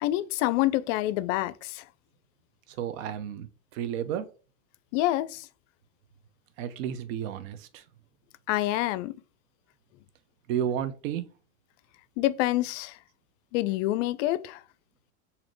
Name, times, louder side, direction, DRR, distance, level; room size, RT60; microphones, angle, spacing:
voice 1, 0.0-1.8 4.9-5.5 8.5-9.1 12.2-13.0 13.5-14.6, left 16 dB, 65° left, 0.5 m, -27 dB
voice 2, 2.8-3.5 3.7-4.3 6.6-7.8 10.5-11.3, right 9 dB, 75° right, 0.7 m, -32 dB
4.1 x 2.8 x 3.0 m
supercardioid pair, 110°, 41 cm